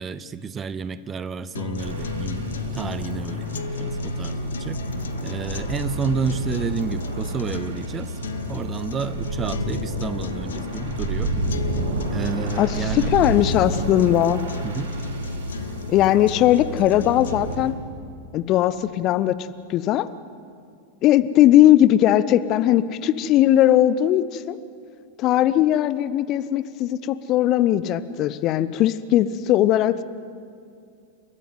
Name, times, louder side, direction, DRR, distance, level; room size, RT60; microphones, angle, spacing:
voice 1, 0.0-2.5 2.7-4.8 5.2-8.2 8.5-11.3 12.1-13.1 14.6-14.9, right 5 dB, 20° right, 15 dB, 0.9 m, -30 dB
sound 1, 1.5-17.5, left 4 dB, 65° left, 1.1 m, -32 dB
sound 2, 1.8-17.7, right 2 dB, 60° right, 2.8 m, -31 dB
voice 2, 12.6-14.4 15.9-17.8 18.3-19.3 19.7-20.1 21.0-24.6 25.2-30.0, left 13 dB, 35° left, 15 dB, 0.7 m, -19 dB
29.5 x 14.0 x 9.5 m, 2.4 s
figure-of-eight pair, 90°, 0 cm